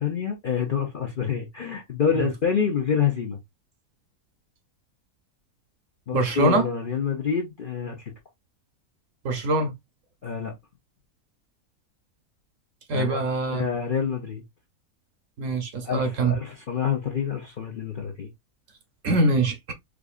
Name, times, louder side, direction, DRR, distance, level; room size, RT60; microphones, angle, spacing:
voice 1, 0.0-3.4 6.1-8.1 10.2-10.6 12.9-13.2 13.5-14.4 15.8-18.3, left 7 dB, 50° left, 0.6 m, -27 dB
voice 2, 6.1-6.7 9.2-9.7 12.9-13.7 15.4-16.4 19.0-19.7, right 2 dB, 60° right, 1.1 m, -23 dB
4.8 x 2.4 x 2.4 m
omnidirectional pair, 1.6 m